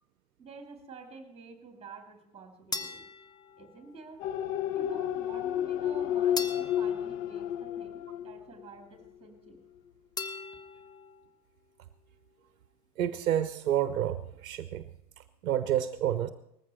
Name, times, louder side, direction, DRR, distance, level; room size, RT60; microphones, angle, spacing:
voice 1, 0.4-3.0 3.6-4.2 4.7-9.6, right 4 dB, 10° right, 4 dB, 2.7 m, -49 dB
sound 1, 2.7-4.2 6.4-8.2 10.2-11.3, left 3 dB, 10° left, 0.7 m, -41 dB
sound 2, 4.2-8.7 9.1-9.2, left 10 dB, 35° left, 0.8 m, -31 dB
voice 2, 13.0-14.8 15.4-16.3, right 11 dB, 60° right, 12 dB, 0.8 m, -29 dB
19.0 x 14.5 x 4.3 m, 0.77 s
figure-of-eight pair, 85°, 48 cm